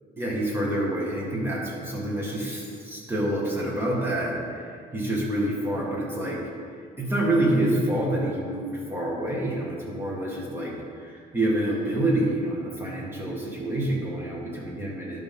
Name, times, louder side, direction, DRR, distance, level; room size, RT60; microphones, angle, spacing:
voice 1, 0.2-6.4 7.0-15.2, right 1 dB, 15° right, -4 dB, 1.9 m, -27 dB
11.0 x 5.4 x 3.8 m, 2.2 s
cardioid pair, 135°, 16 cm